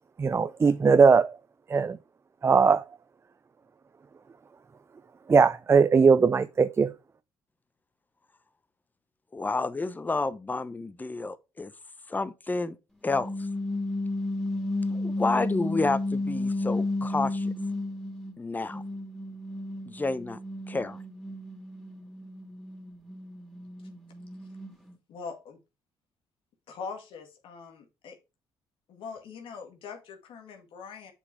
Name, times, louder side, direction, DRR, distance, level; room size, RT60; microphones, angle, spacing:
voice 1, 0.2-1.4 1.7-2.0 2.4-2.9 5.3-6.9, right 5 dB, 30° right, 0.5 m, -20 dB
voice 2, 9.3-11.7 12.1-12.8 13.0-13.3 14.9-17.5 18.4-18.8 19.9-20.4 20.7-21.0, left 3 dB, 20° left, 0.7 m, -30 dB
sound 1, 13.1-18.3 18.7-24.9, left 2 dB, ahead, 2.6 m, -33 dB
voice 3, 25.1-25.6 26.7-28.2 28.9-31.1, left 5 dB, 75° left, 2.0 m, -42 dB
6.9 x 5.1 x 4.7 m
supercardioid pair, 70°, 9 cm